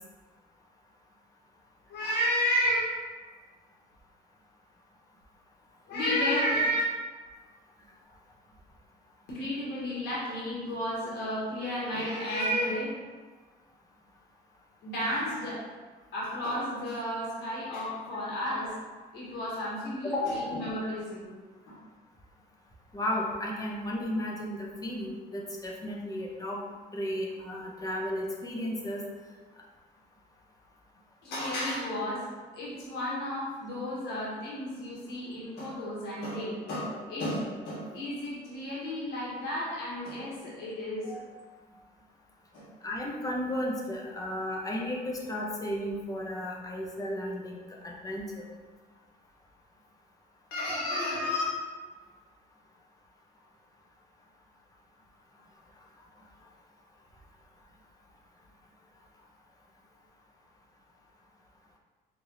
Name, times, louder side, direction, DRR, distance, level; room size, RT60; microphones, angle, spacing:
voice 1, 1.9-2.9 5.9-6.8 9.3-12.9 14.8-15.6 16.1-18.7 19.1-21.3 21.7-21.8 31.2-32.2 32.5-41.4 42.5-42.6 50.5-51.4, equal, 75° left, -6 dB, 1.4 m, -32 dB
voice 2, 20.0-20.5 22.9-26.6 26.9-29.0 42.8-48.4, left 1 dB, 20° left, -2 dB, 0.7 m, -34 dB
4.8 x 2.7 x 2.7 m, 1.4 s
cardioid pair, 110°, 17 cm